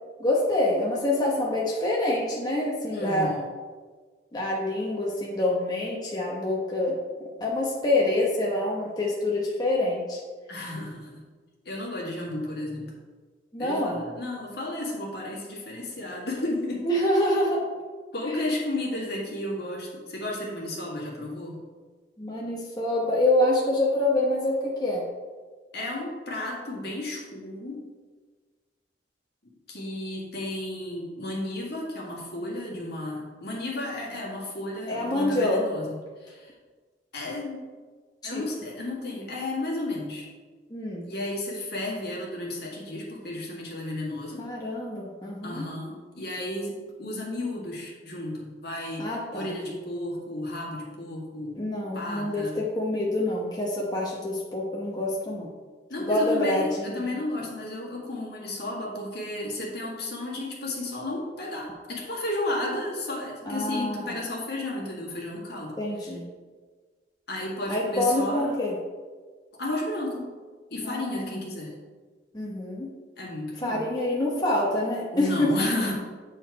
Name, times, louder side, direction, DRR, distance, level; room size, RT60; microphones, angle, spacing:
voice 1, 0.2-3.3 4.3-7.0 7.4-10.2 13.5-14.0 16.8-17.6 18.3-18.4 22.2-25.0 34.9-35.6 38.2-38.4 40.7-41.0 44.4-45.6 49.0-49.5 51.5-55.5 56.0-57.2 63.5-64.1 65.8-66.2 67.7-68.7 70.8-71.4 72.3-72.9 73.6-75.5, left 1 dB, 25° left, -4 dB, 1.0 m, -26 dB
voice 2, 2.9-3.5 10.5-11.2 11.7-12.9 13.6-16.9 17.2-17.3 18.1-21.6 25.7-27.8 29.7-36.5 37.1-37.6 38.2-40.3 41.0-44.4 45.4-51.6 51.9-52.6 55.9-65.8 66.0-66.1 67.3-68.5 69.5-70.3 70.7-71.8 73.2-73.8 75.1-75.9, left 1 dB, 65° left, -3 dB, 1.8 m, -33 dB
7.9 x 4.5 x 4.6 m, 1.4 s
head